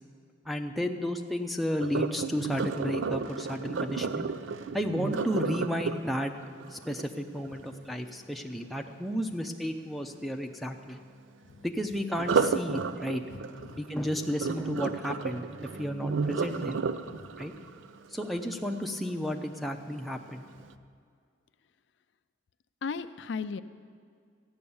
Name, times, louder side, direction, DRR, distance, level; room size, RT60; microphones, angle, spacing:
voice 1, 0.5-4.3 4.7-6.3 6.7-11.0 11.6-13.2 13.8-15.5 15.8-16.8 17.4-17.5 18.1-20.5, equal, ahead, 2 dB, 0.6 m, -32 dB
Sink (filling or washing), 1.8-7.8 12.1-19.2 19.7-20.0 20.5-20.6, right 5 dB, 90° right, 0.5 m, -33 dB
voice 2, 13.3-13.8 17.0-17.3 22.8-23.6, left 5 dB, 70° left, 11 dB, 0.4 m, -36 dB
13.5 x 9.6 x 7.0 m, 2.2 s
head